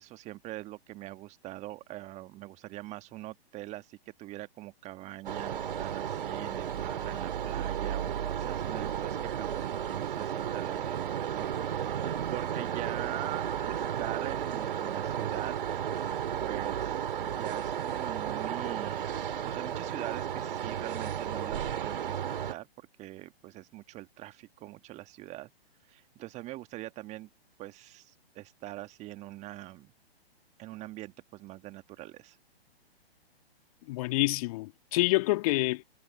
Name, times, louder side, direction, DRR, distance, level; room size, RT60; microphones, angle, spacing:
voice 1, 0.0-16.0 16.4-19.1 19.4-25.5 25.9-27.3 27.6-29.9 30.6-32.4, right 17 dB, 20° right, 1.5 m, -43 dB
sound 1, 5.2-22.5, right 9 dB, 55° right, 3.7 m, -33 dB
voice 2, 33.9-35.8, left 20 dB, 35° left, 1.8 m, -27 dB
figure-of-eight pair, 120°, 31 cm